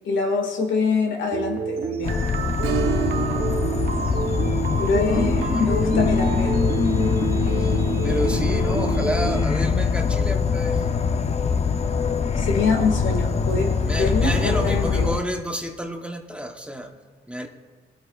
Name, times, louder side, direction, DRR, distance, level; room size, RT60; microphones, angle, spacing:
voice 1, 0.0-2.3 4.8-6.6 12.4-13.7 14.0-15.1, left 4 dB, 70° left, 2 dB, 1.9 m, -24 dB
sound 1, 1.3-9.5, right 6 dB, 50° right, 0.9 m, -29 dB
Insect / Frog, 2.0-15.2, left 5 dB, 35° left, 0.6 m, -23 dB
Strum, 2.6-11.8 12.1-12.2 14.8-14.9 15.4-15.5, right 9 dB, 85° right, 0.9 m, -35 dB
voice 2, 5.1-5.7 7.4-10.9 13.9-16.9 17.3-17.5, equal, 5° right, 3 dB, 1.0 m, -30 dB
19.5 x 8.5 x 2.4 m, 1.4 s
cardioid pair, 90°, 20 cm